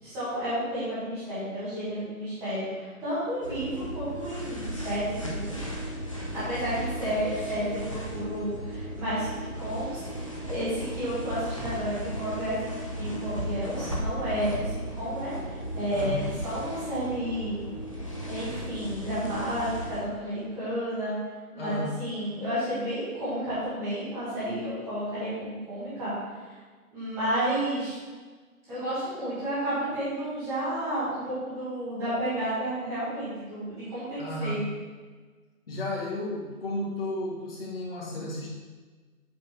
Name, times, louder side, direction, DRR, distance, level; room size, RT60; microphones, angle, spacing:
voice 1, 0.0-5.6 6.3-10.0 10.4-15.3 15.7-17.6 18.3-21.2 21.5-26.1 26.9-27.9 28.7-34.6, equal, 5° right, -12 dB, 1.5 m, -31 dB
sound 1, 3.4-20.0, equal, 20° left, 0.6 m, -35 dB
voice 2, 21.6-21.9 34.2-34.6 35.7-38.6, left 1 dB, 40° left, -4 dB, 1.8 m, -33 dB
7.8 x 4.1 x 4.5 m, 1.4 s
figure-of-eight pair, 160°, 45 cm